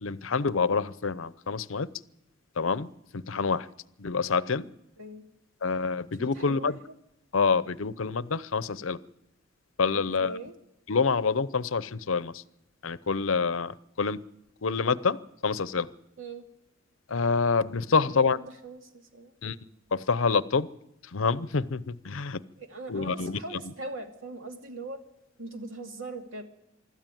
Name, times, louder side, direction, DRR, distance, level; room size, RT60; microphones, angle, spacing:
voice 1, 0.0-1.9 2.6-3.7 4.0-4.7 5.6-6.8 7.3-9.0 9.8-10.4 10.9-12.4 12.8-14.2 14.6-15.2 15.4-15.9 17.1-18.4 19.4-19.6 19.9-20.7 21.0-22.4 22.9-23.4, left 5 dB, 80° left, 16 dB, 0.7 m, -27 dB
voice 2, 6.2-6.7 9.9-10.5 16.2-16.4 18.0-19.3 22.6-25.0 25.4-26.4, right 2 dB, 80° right, 4 dB, 2.6 m, -41 dB
25.0 x 13.0 x 9.2 m, 0.87 s
head